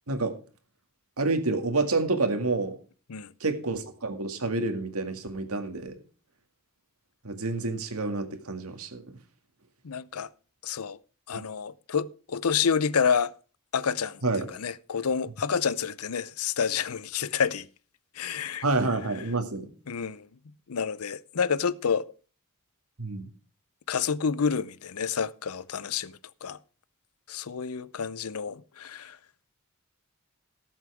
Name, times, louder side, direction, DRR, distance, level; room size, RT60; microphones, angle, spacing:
voice 1, 1.2-2.7 3.4-5.9 7.2-9.0 11.3-11.4 14.2-14.5 18.6-19.7 23.0-23.2, right 3 dB, 85° right, 2.0 m, -28 dB
voice 2, 9.8-10.3 10.6-11.0 11.3-13.3 13.7-14.2 14.5-17.7 18.2-18.6 19.9-20.3 20.7-22.1 23.9-26.6 27.3-29.2, left 6 dB, 90° left, 0.6 m, -29 dB
18.0 x 7.4 x 3.4 m
head